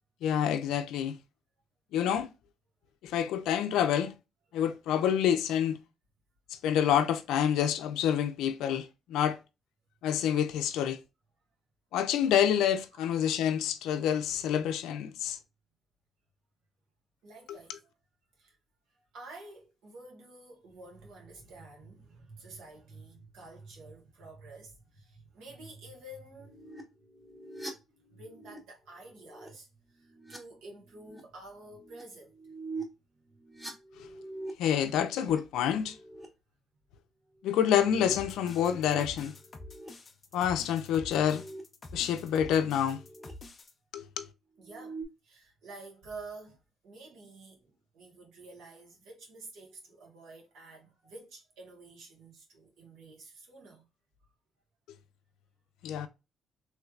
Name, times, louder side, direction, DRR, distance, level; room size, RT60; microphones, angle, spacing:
voice 1, 0.2-1.2 1.9-2.3 3.0-4.1 4.5-5.8 6.5-9.4 10.0-11.0 11.9-15.4 17.5-17.6 34.0-34.1 34.6-36.0 37.4-39.3 40.3-41.4 41.9-43.0 43.9-44.3 55.8-56.1, left 9 dB, 90° left, 0.4 m, -28 dB
voice 2, 17.2-17.9 18.4-18.6 19.1-26.6 28.1-32.5 44.6-46.6 46.8-53.8, right 2 dB, 85° right, 1.5 m, -50 dB
sound 1, 26.4-28.6 29.0-29.5 29.9-30.4 30.8-31.2 31.6-32.0 32.3-32.8 33.3-35.4 35.7-36.3 37.5-39.0 39.3-39.9 41.0-42.5 42.8-43.3 44.6-45.0, right 2 dB, 10° right, 1.0 m, -45 dB
sound 2, 38.1-43.7, left 2 dB, 35° left, 0.6 m, -48 dB
3.2 x 3.1 x 2.4 m
cardioid pair, 90°, 0 cm